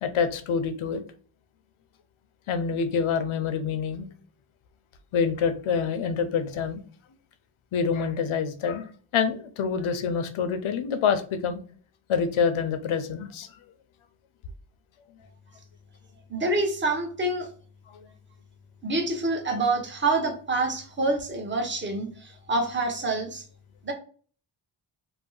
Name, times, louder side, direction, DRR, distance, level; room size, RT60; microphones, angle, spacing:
voice 1, 0.0-1.0 2.5-4.1 5.1-6.8 7.7-8.9 9.1-11.6 12.1-13.5, left 6 dB, 90° left, 9 dB, 0.6 m, -26 dB
voice 2, 16.3-17.5 18.8-23.4 23.8-23.9, right 2 dB, 25° right, 3 dB, 0.7 m, -27 dB
2.6 x 2.1 x 3.7 m, 0.42 s
wide cardioid pair, 130°, 48 cm